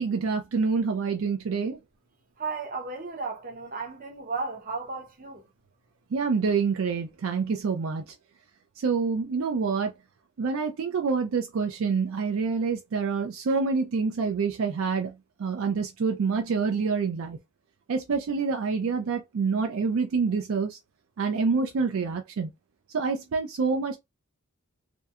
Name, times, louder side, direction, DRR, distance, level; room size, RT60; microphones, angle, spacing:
voice 1, 0.0-1.8 6.1-8.1 8.8-9.9 10.4-15.1 15.4-17.4 17.9-20.8 21.2-22.5 22.9-24.0, right 5 dB, 65° right, 0.4 m, -27 dB
voice 2, 2.4-5.4, right 4 dB, 40° right, 0.7 m, -34 dB
2.6 x 2.2 x 2.4 m
head